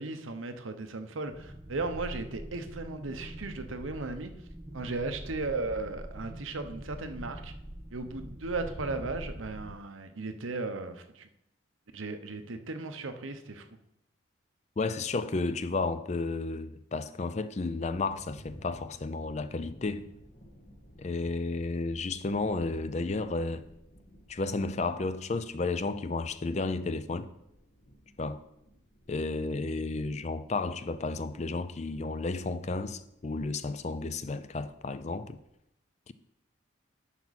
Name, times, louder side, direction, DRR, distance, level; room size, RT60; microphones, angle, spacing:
voice 1, 0.0-4.3 4.7-7.5 7.9-11.3 11.9-13.6, right 3 dB, 85° right, 0.9 m, -36 dB
sound 1, 1.3-9.7, equal, 15° right, 1.0 m, -44 dB
voice 2, 14.8-20.1 21.0-23.7 24.3-27.3 28.2-28.4 29.1-35.4 36.1-36.2, left 3 dB, 35° left, 0.4 m, -32 dB
sound 2, 17.5-35.5, equal, 70° left, 1.8 m, -56 dB
11.0 x 5.8 x 4.1 m
head